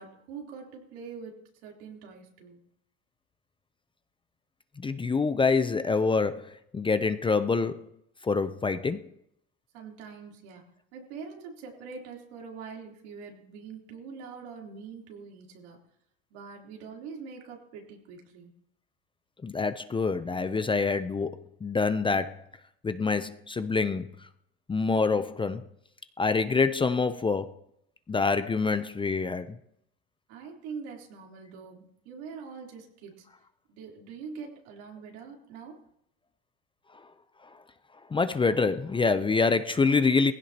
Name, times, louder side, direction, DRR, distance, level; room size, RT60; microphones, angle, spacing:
voice 1, 0.0-1.4 1.6-2.6 9.7-10.6 10.9-15.8 16.3-18.5 30.3-33.3 33.7-35.8, right 5 dB, 80° right, 3.5 m, -44 dB
voice 2, 4.8-7.9 8.2-9.1 19.4-22.4 22.8-24.1 24.7-25.6 26.2-27.5 28.1-29.6 38.1-40.3, left 4 dB, 15° left, 0.6 m, -26 dB
19.0 x 16.0 x 2.9 m
supercardioid pair, 105°, 32 cm